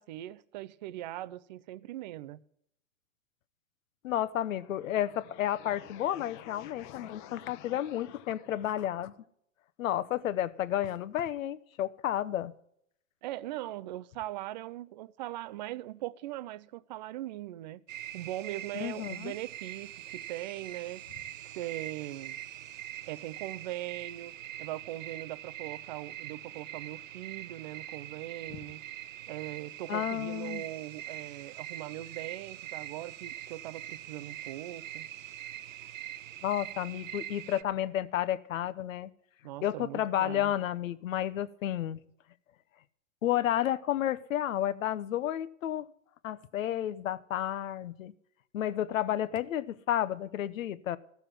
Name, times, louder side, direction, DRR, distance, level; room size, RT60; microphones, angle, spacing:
voice 1, 0.0-2.4 13.2-17.8 18.1-21.0 21.5-22.4 23.1-24.3 24.6-28.8 29.3-35.1 39.4-40.5, right 15 dB, 35° right, 0.4 m, -40 dB
voice 2, 4.0-9.1 9.8-12.5 18.7-19.3 29.9-30.6 36.4-39.1 39.6-42.0 43.2-45.9 46.2-48.1 48.5-51.0, left 11 dB, 75° left, 0.9 m, -31 dB
sound 1, 4.3-9.2, left 12 dB, 35° left, 1.0 m, -51 dB
sound 2, 17.9-37.6, right 12 dB, 75° right, 0.9 m, -43 dB
14.0 x 6.9 x 7.2 m
hypercardioid pair, 150°, 40 cm